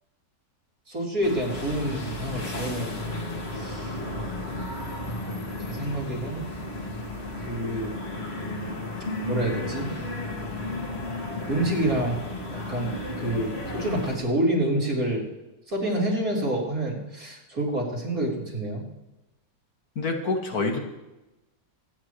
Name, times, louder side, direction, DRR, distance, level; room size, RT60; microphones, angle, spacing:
voice 1, 0.9-3.0 3.5-3.9 5.6-6.5 7.4-7.9 9.3-9.9 11.5-12.2 12.5-15.2 15.7-18.9, right 1 dB, 70° right, -4 dB, 4.6 m, -28 dB
sound 1, 1.2-14.2, left 1 dB, 45° left, 2.5 m, -33 dB
voice 2, 20.0-20.8, left 3 dB, 80° left, 2 dB, 2.4 m, -26 dB
25.5 x 10.5 x 3.3 m, 0.99 s
omnidirectional pair, 1.6 m